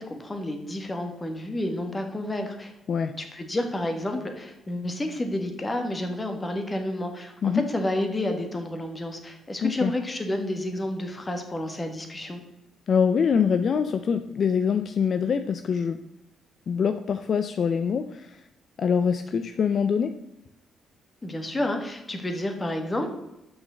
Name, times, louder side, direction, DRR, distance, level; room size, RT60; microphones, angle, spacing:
voice 1, 0.0-2.7 3.2-12.4 21.2-23.1, left 1 dB, 20° left, 5 dB, 1.6 m, -30 dB
voice 2, 12.9-16.0 16.7-18.4 18.8-20.1, left 6 dB, 55° left, 9 dB, 0.5 m, -24 dB
6.4 x 6.1 x 6.3 m, 0.93 s
cardioid pair, 90°, 0 cm